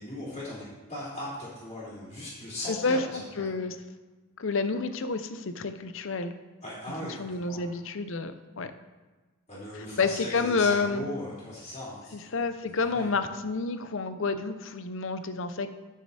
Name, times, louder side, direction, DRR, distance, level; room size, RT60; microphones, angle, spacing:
voice 1, 0.0-3.5 6.6-7.7 9.5-12.3 12.7-13.1, left 1 dB, 30° left, -14 dB, 3.1 m, -39 dB
voice 2, 2.7-3.0 3.4-3.8 4.4-6.3 7.2-8.7 9.8-11.1 12.1-15.7, left 4 dB, 55° left, 10 dB, 0.6 m, -29 dB
10.0 x 6.6 x 4.1 m, 1.3 s
head